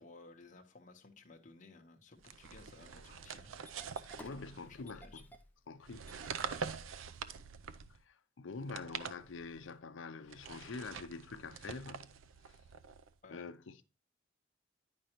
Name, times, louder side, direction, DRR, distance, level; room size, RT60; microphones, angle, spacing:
voice 1, 0.0-3.5 4.3-5.2 13.2-13.5, left 3 dB, 40° left, 0.8 m, -57 dB
sound 1, 2.2-5.0 5.8-8.0 8.6-9.7 10.3-13.1, right 6 dB, 85° right, 0.5 m, -45 dB
Engine starting, 2.6-7.5, equal, 10° left, 0.5 m, -57 dB
voice 2, 4.2-5.3 5.7-6.1 7.9-12.2 12.5-12.6 13.3-13.8, left 4 dB, 75° left, 0.6 m, -46 dB
9.7 x 5.3 x 2.9 m
head